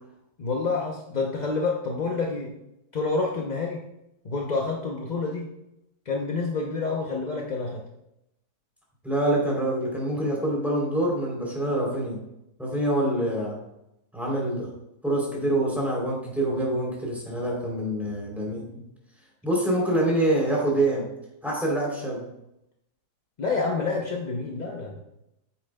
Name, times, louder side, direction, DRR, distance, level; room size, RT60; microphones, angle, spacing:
voice 1, 0.4-2.5 2.9-3.8 4.2-5.5 6.1-7.8 23.4-25.0, left 3 dB, 45° left, 0 dB, 0.5 m, -28 dB
voice 2, 9.0-12.2 12.6-13.6 14.1-14.7 15.0-18.8 19.4-21.0 21.4-22.2, right 1 dB, ahead, -3 dB, 3.1 m, -26 dB
8.9 x 8.5 x 2.2 m, 0.84 s
omnidirectional pair, 1.8 m